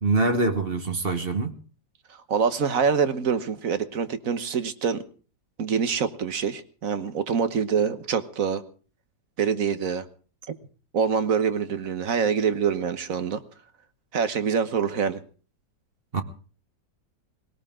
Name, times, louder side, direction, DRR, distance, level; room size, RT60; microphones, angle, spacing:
voice 1, 0.0-1.5 16.1-16.2, right 3 dB, 35° right, 1.3 m, -24 dB
voice 2, 2.3-5.0 5.6-8.6 9.4-10.0 10.9-13.4 14.1-15.2, right 6 dB, 55° right, 1.4 m, -25 dB
21.0 x 18.0 x 3.7 m
omnidirectional pair, 1.9 m